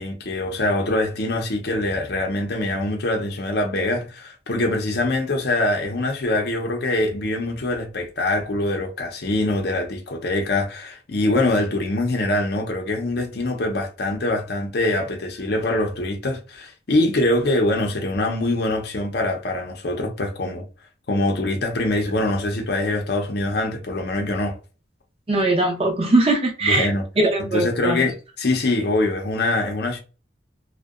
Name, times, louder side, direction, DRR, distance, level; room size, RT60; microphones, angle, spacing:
voice 1, 0.0-20.6 21.1-24.6 26.6-27.0 27.4-30.0, left 2 dB, 60° left, 0.6 m, -24 dB
voice 2, 25.3-26.9 27.2-28.0, right 2 dB, 30° right, 0.6 m, -20 dB
2.6 x 2.1 x 2.3 m
head